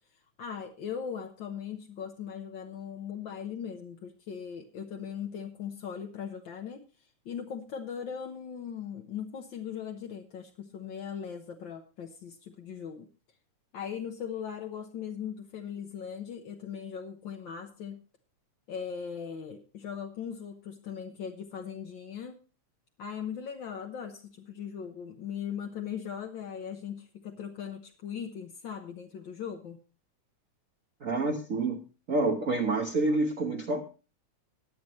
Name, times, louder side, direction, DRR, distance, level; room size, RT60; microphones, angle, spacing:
voice 1, 0.4-6.8 7.2-13.1 13.7-18.0 18.7-22.3 23.0-29.8, left 7 dB, 65° left, 3 dB, 1.2 m, -39 dB
voice 2, 31.0-31.8 32.1-33.8, right 2 dB, 80° right, 4 dB, 0.7 m, -28 dB
20.0 x 7.8 x 3.1 m, 0.33 s
omnidirectional pair, 3.4 m